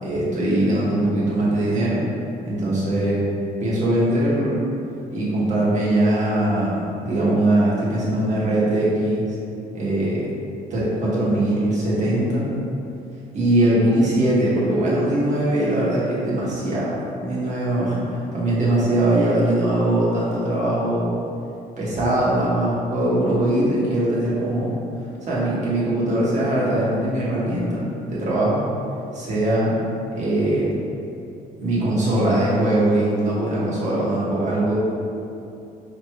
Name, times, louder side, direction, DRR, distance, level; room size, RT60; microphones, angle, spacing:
voice 1, 0.0-2.0 2.4-3.3 3.6-4.6 5.1-9.4 9.7-10.3 10.7-12.5 13.3-17.9 18.3-21.1 21.8-24.7 25.2-28.6 29.1-29.8 30.1-30.8 31.6-34.7, right 1 dB, 45° right, -7 dB, 1.2 m, -21 dB
5.0 x 3.1 x 2.2 m, 2.6 s
cardioid pair, 110°, 17 cm